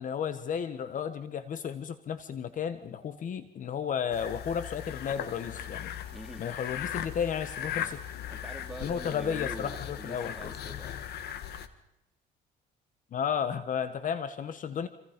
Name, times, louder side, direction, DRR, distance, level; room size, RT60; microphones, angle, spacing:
voice 1, 0.0-5.9 6.4-8.0 8.8-10.3 13.1-14.9, left 7 dB, 50° left, 11 dB, 1.5 m, -33 dB
sound 1, 4.1-11.7, left 10 dB, 70° left, 1.8 m, -38 dB
voice 2, 6.1-6.5 7.6-7.7 8.3-11.0, right 1 dB, ahead, 2 dB, 3.4 m, -44 dB
27.0 x 26.5 x 5.3 m, 0.87 s
cardioid pair, 110°, 17 cm